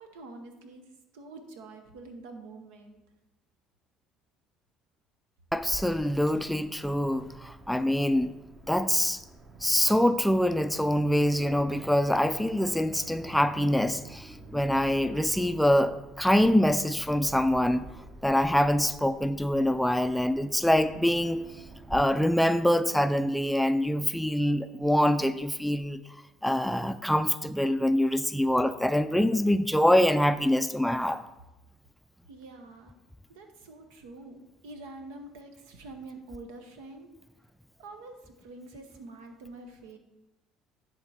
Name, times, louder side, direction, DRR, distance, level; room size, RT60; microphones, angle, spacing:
voice 1, 0.0-3.0 32.3-32.9 33.3-37.1 37.8-40.0, right 2 dB, 80° right, 5 dB, 0.9 m, -46 dB
voice 2, 5.5-8.3 8.7-9.2 9.6-17.9 18.2-21.4 21.9-26.0 26.4-31.2, left 1 dB, 5° left, 10 dB, 0.4 m, -25 dB
Aircraft, 5.5-22.0, right 2 dB, 30° right, 0.8 m, -47 dB
10.5 x 3.6 x 4.2 m, 0.97 s
hypercardioid pair, 70°, 0 cm